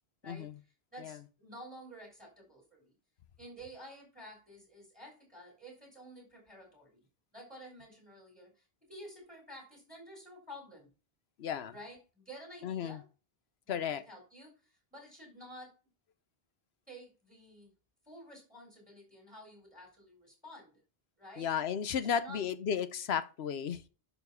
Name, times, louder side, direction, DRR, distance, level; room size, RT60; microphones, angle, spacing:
voice 1, 0.9-2.9 3.4-7.0 7.3-10.9 11.7-13.0 13.7-15.8 16.9-17.7 18.0-20.8 21.2-21.5 21.9-22.4, equal, 10° right, 4.0 m, -51 dB
voice 2, 11.4-11.7 12.6-13.0 13.7-14.0 21.4-23.9, left 8 dB, 85° left, 1.0 m, -34 dB
11.0 x 4.3 x 5.6 m
omnidirectional pair, 1.0 m